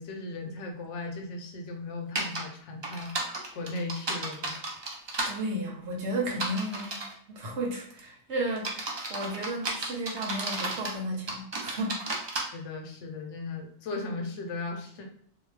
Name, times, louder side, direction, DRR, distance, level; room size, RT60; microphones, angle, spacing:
voice 1, 0.0-4.6 12.5-15.1, left 3 dB, 90° left, 2 dB, 1.0 m, -37 dB
sound 1, 2.2-2.4 2.8-5.3 6.3-7.1 7.7-8.0 8.6-11.0 11.3-12.4, right 2 dB, 45° right, 0.3 m, -33 dB
voice 2, 5.2-7.0 7.3-8.7 9.1-12.0, right 1 dB, 75° right, -1 dB, 1.1 m, -33 dB
2.6 x 2.2 x 3.2 m, 0.63 s
omnidirectional pair, 1.2 m